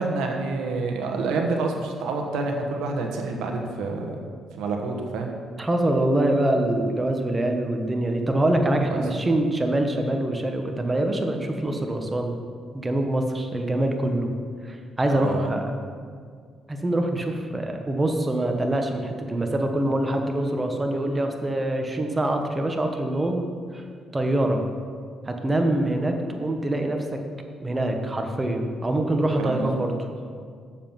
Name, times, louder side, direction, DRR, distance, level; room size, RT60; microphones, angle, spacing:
voice 1, 0.0-4.2 4.6-5.3 8.9-9.0 15.1-15.5 29.4-30.0, right 3 dB, 90° right, 2 dB, 1.2 m, -28 dB
voice 2, 5.6-12.4 12.7-14.3 14.6-15.7 16.7-23.5 23.7-23.8 24.1-24.6 25.2-27.2 27.6-30.1, right 1 dB, 20° right, 4 dB, 1.2 m, -24 dB
7.3 x 7.3 x 5.8 m, 2.1 s
cardioid pair, 90°, 0 cm